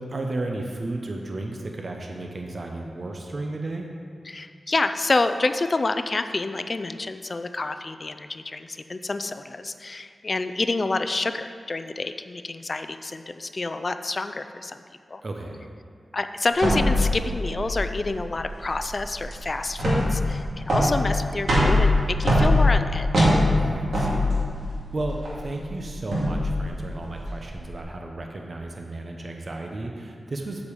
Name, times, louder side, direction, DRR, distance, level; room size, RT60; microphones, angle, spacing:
voice 1, 0.0-3.9 15.2-15.6 23.6-30.6, right 2 dB, 50° right, 2 dB, 0.9 m, -34 dB
voice 2, 4.3-14.8 15.1-15.2 16.1-23.3, left 3 dB, 45° left, 10 dB, 0.5 m, -28 dB
sound 1, 16.6-27.8, left 1 dB, 85° right, 2.4 m, -23 dB
8.0 x 5.1 x 7.1 m, 2.1 s
cardioid pair, 65°, 0 cm